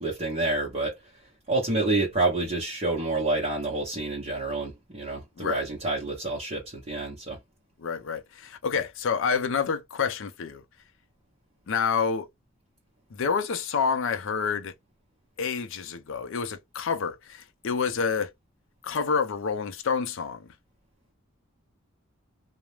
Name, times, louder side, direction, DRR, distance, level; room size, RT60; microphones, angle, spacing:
voice 1, 0.0-1.0 1.5-7.4, right 2 dB, 30° right, 0.8 m, -28 dB
voice 2, 7.8-10.6 11.7-12.3 13.1-14.7 15.4-18.3 18.8-20.5, left 6 dB, 65° left, 0.5 m, -28 dB
2.4 x 2.0 x 3.0 m
head